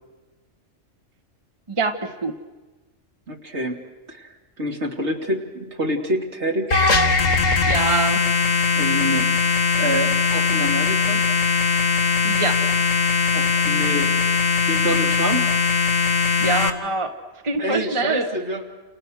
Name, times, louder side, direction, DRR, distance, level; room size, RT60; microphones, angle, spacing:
voice 1, 1.7-2.3 7.7-8.2 12.2-12.6 16.4-17.1 17.4-18.3, right 3 dB, 25° right, 6 dB, 1.3 m, -24 dB
voice 2, 3.3-4.3 4.6-6.8 8.7-11.2 13.3-14.1 14.7-15.5 17.6-18.7, equal, 60° right, 1 dB, 3.2 m, -27 dB
sound 1, 6.7-16.7, left 4 dB, 85° left, 2.2 m, -20 dB
29.5 x 29.5 x 6.4 m, 1.2 s
omnidirectional pair, 1.3 m